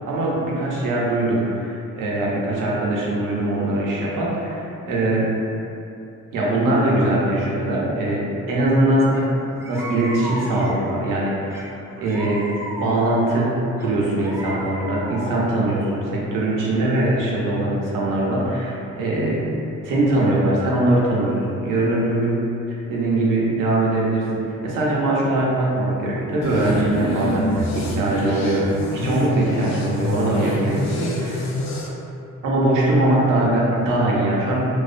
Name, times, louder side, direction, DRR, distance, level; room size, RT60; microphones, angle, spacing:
voice 1, 0.1-5.3 6.3-11.7 12.0-12.5 12.8-19.5 19.8-22.5 22.9-31.5 32.4-34.6, right 1 dB, 90° right, -5 dB, 0.6 m, -21 dB
sound 1, 9.1-9.2 9.6-11.0 11.5-13.3 13.8-15.6, equal, 10° right, 0.3 m, -34 dB
sound 2, 26.4-31.9, left 1 dB, 60° left, 0.4 m, -26 dB
2.7 x 2.2 x 2.4 m, 2.8 s
cardioid pair, 100°, 31 cm